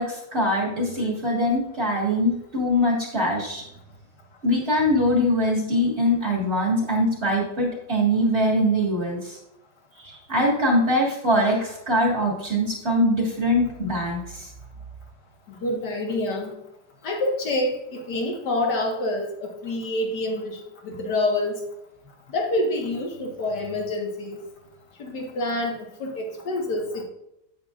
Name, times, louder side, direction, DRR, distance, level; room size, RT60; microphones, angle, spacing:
voice 1, 0.0-3.6 4.4-9.4 10.0-14.5, equal, 35° right, -3 dB, 2.0 m, -23 dB
voice 2, 15.5-16.5 17.0-20.6 20.8-21.6 22.3-24.4 25.0-27.0, left 1 dB, 65° left, 1 dB, 2.0 m, -27 dB
9.5 x 8.6 x 2.5 m, 0.83 s
omnidirectional pair, 2.0 m